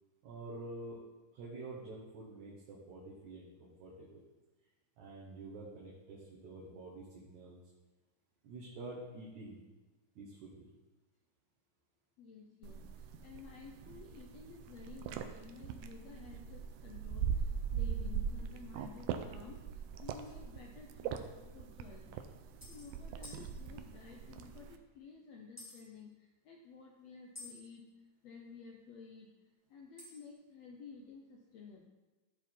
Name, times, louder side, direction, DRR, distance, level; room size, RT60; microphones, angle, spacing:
voice 1, 0.2-1.0 1.3-4.2 5.0-7.6 8.4-9.6 10.2-10.6, right 2 dB, 70° right, -5 dB, 2.6 m, -48 dB
voice 2, 12.2-27.9 28.2-29.3 29.7-31.8, left 5 dB, 70° left, 1 dB, 1.6 m, -53 dB
sound 1, 12.6-24.8, right 7 dB, 85° right, 2.1 m, -41 dB
sound 2, 20.2-20.4 21.4-21.5 21.7-21.8 22.6-22.9 23.2-23.4 25.6-25.8 27.3-27.5 30.0-30.3, left 2 dB, 10° left, 0.8 m, -51 dB
13.0 x 4.7 x 4.4 m, 1.1 s
omnidirectional pair, 3.7 m